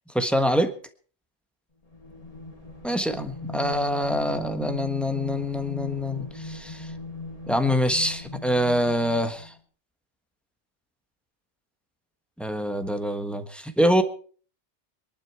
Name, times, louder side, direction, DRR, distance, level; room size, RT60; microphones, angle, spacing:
voice 1, 0.1-0.7 2.8-6.9 7.5-9.5 12.4-14.0, equal, ahead, 8 dB, 1.3 m, -25 dB
sound 1, 1.9-9.5, left 2 dB, 30° left, 2.8 m, -39 dB
22.5 x 11.5 x 4.7 m, 0.43 s
omnidirectional pair, 1.2 m